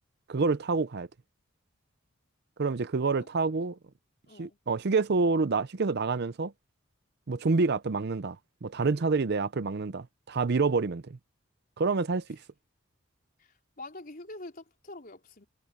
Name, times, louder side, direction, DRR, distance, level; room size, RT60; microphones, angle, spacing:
voice 1, 0.3-1.1 2.6-3.8 4.4-6.5 7.3-11.2 11.8-12.4, right 4 dB, 55° right, 0.6 m, -27 dB
voice 2, 4.3-4.6 13.4-15.5, left 2 dB, 45° left, 4.4 m, -45 dB
head